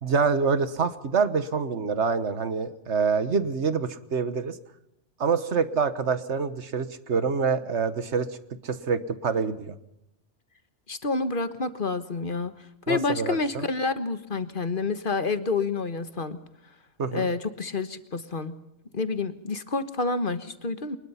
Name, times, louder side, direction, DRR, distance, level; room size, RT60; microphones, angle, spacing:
voice 1, 0.0-4.6 5.2-8.3 8.6-9.7 12.9-13.6 17.0-17.3, right 5 dB, 70° right, 12 dB, 1.5 m, -26 dB
voice 2, 10.9-12.5 12.9-16.4 17.1-18.5 18.9-21.0, left 4 dB, 45° left, 11 dB, 1.4 m, -28 dB
23.5 x 21.0 x 5.7 m, 0.87 s
omnidirectional pair, 1.2 m